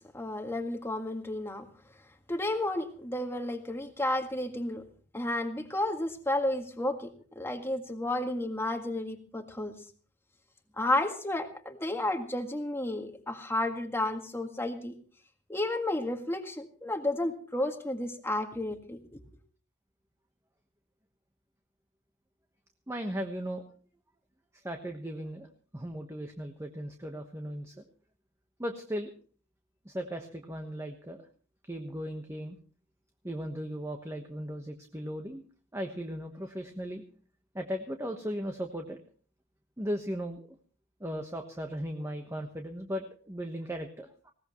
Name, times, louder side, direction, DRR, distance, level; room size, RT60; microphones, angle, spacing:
voice 1, 0.1-1.7 2.3-4.8 5.1-9.8 10.8-14.9 15.5-19.2, left 1 dB, 10° left, 5 dB, 1.7 m, -32 dB
voice 2, 22.9-23.6 24.6-25.5 25.7-27.8 28.6-29.1 29.8-31.2 31.6-32.6 33.2-35.4 35.7-37.0 37.5-39.0 39.8-40.4 41.0-44.3, equal, 15° right, 4 dB, 1.2 m, -37 dB
20.0 x 18.0 x 3.1 m, 0.42 s
head